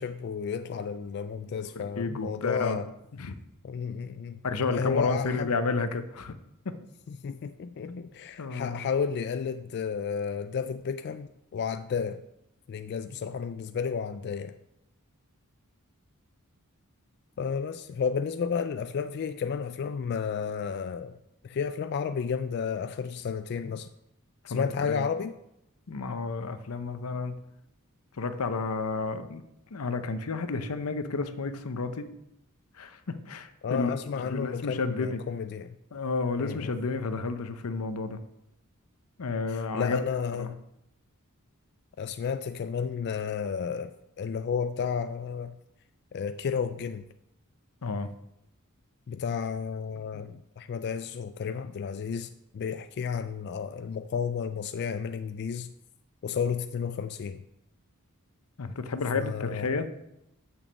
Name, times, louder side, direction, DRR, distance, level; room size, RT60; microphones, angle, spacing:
voice 1, 0.0-2.9 3.6-4.4 4.7-5.5 7.1-12.2 12.7-14.5 17.4-21.2 21.4-23.9 24.5-25.3 33.6-35.8 36.4-36.7 39.5-40.6 42.0-45.6 46.1-47.0 49.1-55.7 56.2-57.4 59.1-59.8, left 6 dB, 50° left, 0.3 m, -32 dB
voice 2, 1.7-2.8 3.2-3.4 4.4-6.3 6.7-6.8 7.9-8.1 8.4-8.8 24.4-25.1 25.9-27.3 28.2-29.4 29.7-32.1 32.8-35.2 35.9-38.2 39.2-40.0 40.4-40.5 47.8-48.1 50.1-50.2 58.6-59.9, left 4 dB, 90° left, 0.7 m, -31 dB
6.4 x 6.0 x 6.9 m
head